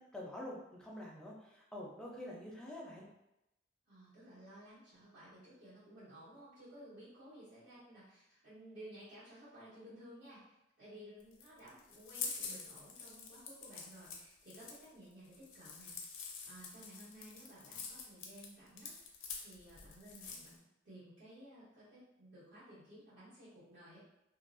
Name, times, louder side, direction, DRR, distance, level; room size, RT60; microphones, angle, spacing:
voice 1, 0.0-3.1, left 1 dB, 5° left, -4 dB, 0.4 m, -47 dB
voice 2, 3.9-16.0 16.4-18.9 19.4-20.6 20.8-24.0, right 1 dB, 80° right, -13 dB, 1.2 m, -55 dB
sound 1, 11.2-20.6, left 5 dB, 90° left, 0.4 m, -47 dB
2.4 x 2.1 x 2.5 m, 0.89 s
head